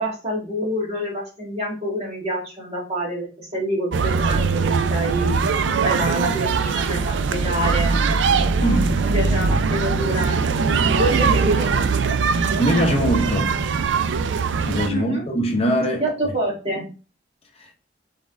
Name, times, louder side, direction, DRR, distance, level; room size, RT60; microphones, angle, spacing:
voice 1, 0.0-5.4 5.8-8.0 9.0-10.7 11.0-11.8 14.9-15.2 16.0-16.9, right 1 dB, 35° right, 1.7 m, -27 dB
sound 1, 3.9-14.9, right 4 dB, 80° right, 0.4 m, -21 dB
voice 2, 8.6-9.1 12.6-13.5 14.6-16.0, equal, 35° left, 0.7 m, -22 dB
4.1 x 3.5 x 3.5 m
head